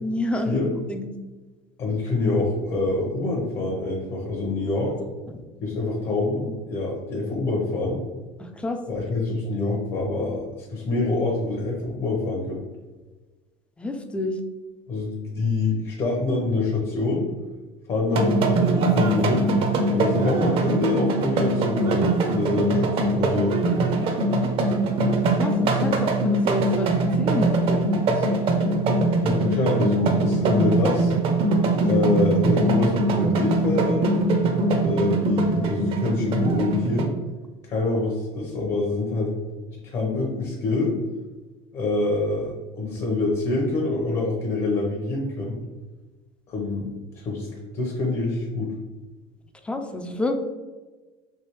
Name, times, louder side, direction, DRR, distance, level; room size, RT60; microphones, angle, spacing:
voice 1, 0.0-1.0 5.3-5.4 8.4-8.8 13.8-14.4 25.3-28.4 49.6-50.3, left 1 dB, 10° left, 6 dB, 0.3 m, -29 dB
voice 2, 1.8-5.0 5.6-8.0 8.9-10.4 10.7-12.6 14.9-17.3 17.9-19.5 19.9-23.6 29.2-31.1 31.8-34.1 34.7-37.1 37.6-39.4 39.7-41.0 41.7-45.6 46.5-47.5 47.7-48.7, left 2 dB, 45° left, -2 dB, 0.8 m, -26 dB
sound 1, 18.1-37.0, right 2 dB, 45° right, 0.5 m, -22 dB
3.3 x 2.7 x 3.0 m, 1.2 s
supercardioid pair, 125°, 13 cm